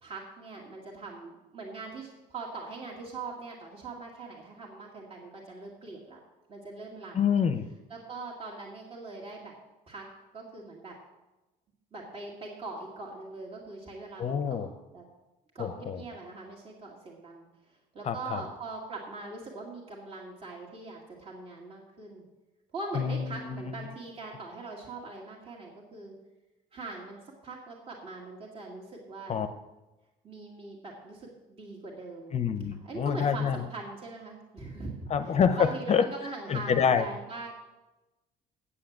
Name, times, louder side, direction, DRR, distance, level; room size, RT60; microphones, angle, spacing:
voice 1, 0.0-6.2 6.5-7.4 7.9-9.5 9.9-10.0 10.3-10.9 11.9-14.7 14.9-15.0 15.5-17.5 17.9-22.2 22.7-26.1 26.7-29.5 30.2-32.4 32.8-37.5, right 3 dB, 35° right, -3 dB, 2.1 m, -42 dB
voice 2, 7.1-7.7 14.2-14.7 15.6-16.0 18.0-18.4 22.9-23.8 29.3-29.5 32.3-33.6 35.1-36.1 36.5-37.1, left 7 dB, 40° left, 10 dB, 0.6 m, -27 dB
8.4 x 7.7 x 7.2 m, 1.1 s
cardioid pair, 110°, 17 cm